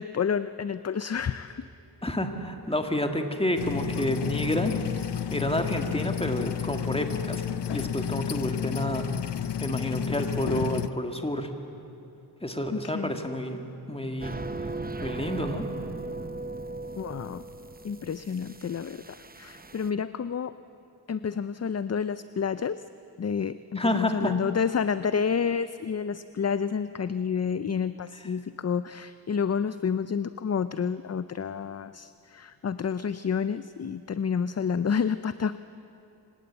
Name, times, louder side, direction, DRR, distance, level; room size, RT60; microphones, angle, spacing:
voice 1, 0.0-1.7 12.7-13.2 17.0-17.4 17.8-20.5 21.1-22.8 23.2-35.6, left 6 dB, 40° left, 13 dB, 0.5 m, -29 dB
voice 2, 2.0-4.7 5.0-7.4 7.7-9.1 9.6-11.5 12.4-14.4 15.0-15.7 23.8-24.4, left 1 dB, 15° left, 5 dB, 1.8 m, -29 dB
sound 1, 3.6-10.9, left 9 dB, 90° left, 0.7 m, -31 dB
sound 2, 14.2-19.9, right 3 dB, 25° right, 0.7 m, -38 dB
25.5 x 18.5 x 8.1 m, 2.7 s
wide cardioid pair, 80°, 41 cm